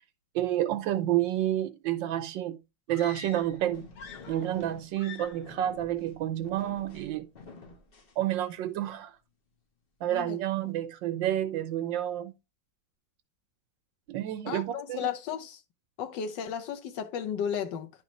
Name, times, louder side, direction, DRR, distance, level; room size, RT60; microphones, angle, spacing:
voice 1, 0.3-2.6 2.9-3.9 4.3-7.3 8.2-9.1 10.0-12.3 14.1-15.0, right 12 dB, 80° right, 1.5 m, -29 dB
sound 1, 2.9-3.6 3.9-4.7 4.9-5.5, left 5 dB, 60° left, 1.4 m, -46 dB
sound 2, 3.1-8.8, left 4 dB, 40° left, 0.9 m, -51 dB
voice 2, 14.5-15.6 16.0-17.9, left 8 dB, 75° left, 1.5 m, -34 dB
10.5 x 4.0 x 3.0 m
omnidirectional pair, 2.0 m